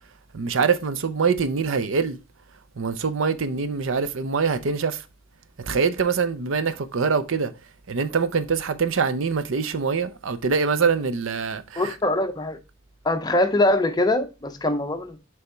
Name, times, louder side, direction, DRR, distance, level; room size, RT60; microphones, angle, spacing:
voice 1, 0.3-2.2 2.8-5.0 5.6-7.5 7.9-11.9, right 5 dB, 80° right, 0.6 m, -24 dB
voice 2, 11.8-12.6 13.0-15.2, left 1 dB, 20° left, 0.6 m, -23 dB
6.7 x 3.5 x 4.4 m
head